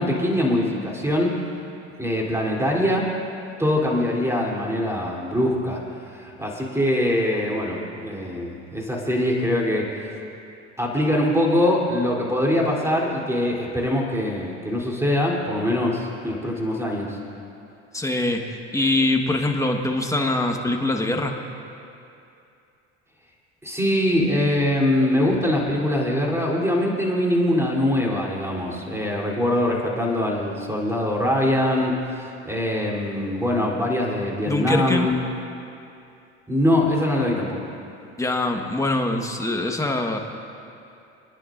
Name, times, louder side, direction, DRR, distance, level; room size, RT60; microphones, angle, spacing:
voice 1, 0.0-1.4 2.0-3.1 3.6-5.8 6.1-10.1 10.8-17.2 23.6-35.1 36.5-37.7, left 1 dB, 10° right, -2 dB, 3.4 m, -23 dB
voice 2, 17.9-21.4 34.5-35.1 38.2-40.2, left 2 dB, 10° left, 3 dB, 1.4 m, -23 dB
28.5 x 10.5 x 2.6 m, 2.6 s
hypercardioid pair, 70°, 34 cm